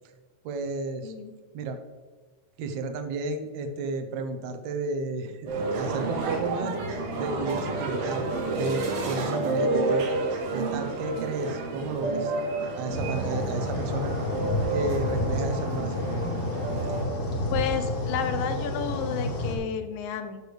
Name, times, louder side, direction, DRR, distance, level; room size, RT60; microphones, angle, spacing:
voice 1, 0.4-1.1 1.5-1.8 2.6-6.8 7.2-8.3 8.5-10.2 10.5-12.3 12.8-14.2 14.7-16.2, right 3 dB, 70° right, 7 dB, 1.8 m, -32 dB
voice 2, 1.0-1.4 17.5-20.4, left 7 dB, 80° left, 8 dB, 2.4 m, -31 dB
sound 1, 5.5-17.0, right 2 dB, 90° right, 3.3 m, -30 dB
sound 2, 12.9-19.6, left 1 dB, 50° left, 2.2 m, -30 dB
12.5 x 6.7 x 3.3 m, 1.4 s
omnidirectional pair, 4.1 m